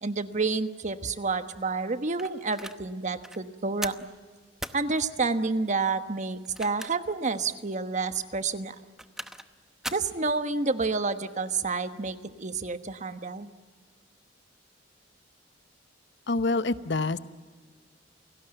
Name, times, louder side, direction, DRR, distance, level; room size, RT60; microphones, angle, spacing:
voice 1, 0.0-3.9 4.7-8.7 9.9-13.5, right 4 dB, 40° right, 10 dB, 1.2 m, -29 dB
sound 1, 2.2-2.8 3.2-3.4 3.8-4.1 4.6-4.8 6.4-7.1 7.5-7.6 8.7-9.5 9.8-10.1, right 1 dB, 5° right, 0.9 m, -38 dB
voice 2, 16.3-17.2, left 3 dB, 65° left, 13 dB, 0.9 m, -26 dB
29.0 x 18.0 x 9.0 m, 1.5 s
head